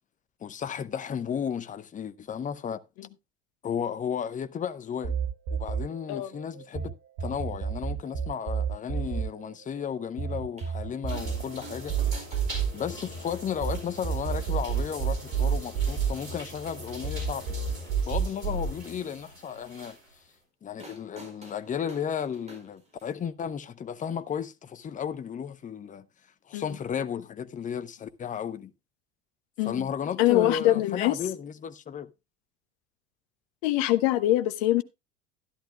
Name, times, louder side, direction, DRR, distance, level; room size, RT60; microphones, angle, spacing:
voice 1, 0.4-2.8 3.6-5.2 5.5-6.9 7.2-12.0 12.7-17.6 18.1-20.0 20.6-26.1 26.5-28.7 29.6-32.1, left 8 dB, 20° left, 0.8 m, -34 dB
sound 1, 5.0-6.9 7.2-13.7 14.0-16.7 17.0-18.7, right 7 dB, 55° right, 3.9 m, -30 dB
sound 2, 10.6-10.7 11.1-11.4 11.6-13.8 14.6-14.7 15.7-15.8 16.2-16.3 17.5-18.1 20.8-23.2 24.4-24.5, right 2 dB, 15° right, 4.6 m, -49 dB
sound 3, 11.1-20.2, equal, 80° right, 4.8 m, -42 dB
voice 2, 30.2-31.2 33.6-34.8, left 15 dB, 50° left, 1.1 m, -23 dB
13.0 x 11.5 x 2.3 m
figure-of-eight pair, 75°, 40 cm